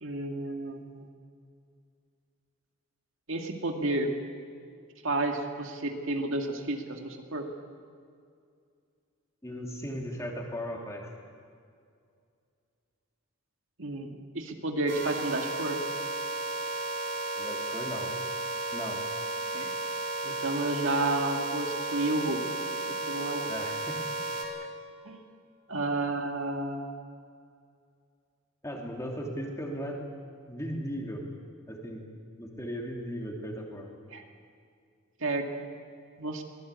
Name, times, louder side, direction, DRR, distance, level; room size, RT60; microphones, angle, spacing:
voice 1, 0.0-1.1 3.3-4.1 5.0-7.5 13.8-15.8 19.5-19.7 20.2-23.5 25.0-25.2 25.7-27.0 34.1-34.2 35.2-35.7 36.2-36.4, right 2 dB, 65° right, 3 dB, 2.2 m, -31 dB
voice 2, 9.4-11.1 17.4-18.1 18.7-19.0 23.5-24.0 28.6-30.0 30.5-31.2 31.7-32.0 32.4-33.9, equal, 15° left, 0 dB, 2.9 m, -37 dB
sound 1, 14.9-24.4, right 2 dB, 45° right, 3.8 m, -34 dB
23.5 x 18.5 x 8.4 m, 2.3 s
head